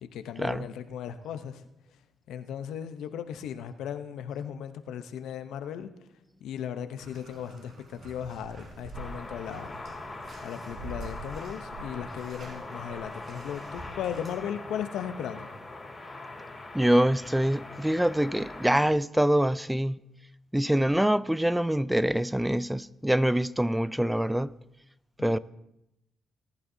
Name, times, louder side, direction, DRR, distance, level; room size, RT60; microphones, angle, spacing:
voice 1, 0.0-1.6 2.3-5.9 6.4-9.8 10.4-15.5 25.2-25.4, left 9 dB, 80° left, 0.8 m, -37 dB
Bathtub (filling or washing), 7.0-14.3, right 2 dB, 55° right, 4.1 m, -46 dB
sound 1, 8.9-18.8, left 2 dB, 30° left, 3.0 m, -42 dB
voice 2, 16.7-20.0 20.5-24.5 25.2-25.4, right 1 dB, 5° right, 0.4 m, -25 dB
18.5 x 11.0 x 2.7 m
supercardioid pair, 65°, 0 cm